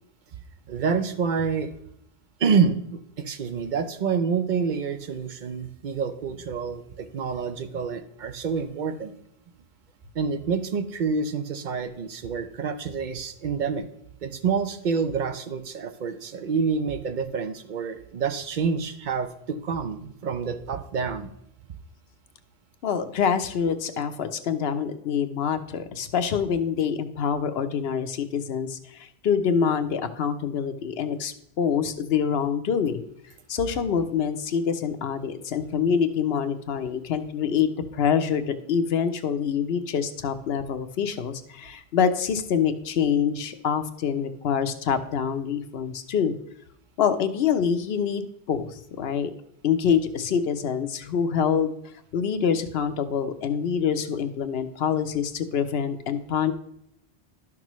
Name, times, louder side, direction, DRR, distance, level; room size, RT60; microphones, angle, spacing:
voice 1, 0.7-1.7 2.4-9.1 10.1-13.9 14.2-21.3, right 5 dB, 55° right, 10 dB, 0.7 m, -27 dB
voice 2, 22.8-33.0 33.5-46.3 47.0-49.3 49.6-51.7 52.1-56.5, left 7 dB, 70° left, 10 dB, 0.9 m, -26 dB
11.5 x 6.0 x 3.0 m, 0.75 s
omnidirectional pair, 1.1 m